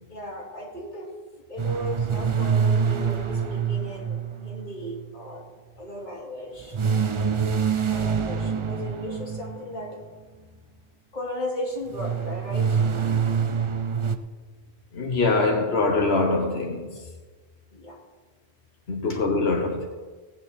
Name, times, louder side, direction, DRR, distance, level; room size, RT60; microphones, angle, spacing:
voice 1, 0.1-1.2 1.5-5.5 5.8-6.8 7.9-10.0 11.1-12.9 17.7-18.0 19.1-19.2, left 1 dB, 50° left, 2.7 m, -36 dB
sound 1, 1.6-5.1 6.7-9.8 11.9-14.2, right 6 dB, 35° right, 0.5 m, -25 dB
voice 2, 14.9-16.9 18.9-19.9, left 3 dB, 85° left, 1.5 m, -23 dB
17.0 x 9.1 x 4.2 m
omnidirectional pair, 1.0 m